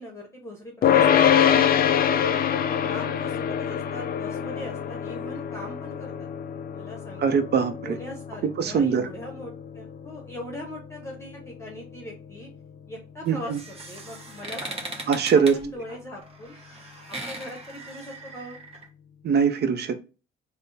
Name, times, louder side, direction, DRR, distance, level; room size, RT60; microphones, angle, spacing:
voice 1, 0.0-2.3 2.8-6.1 6.7-7.4 7.8-12.5 12.9-13.6 13.9-15.0 15.3-16.6 17.1-18.6, left 1 dB, 15° left, 0.9 m, -40 dB
sound 1, 0.8-12.1, left 9 dB, 50° left, 0.4 m, -25 dB
voice 2, 7.2-8.0 8.4-9.1 13.2-13.6 15.1-15.6 19.2-20.0, right 6 dB, 55° right, 0.6 m, -22 dB
sound 2, 13.3-18.8, right 2 dB, 30° right, 1.0 m, -39 dB
3.4 x 2.1 x 4.0 m
cardioid pair, 90°, 20 cm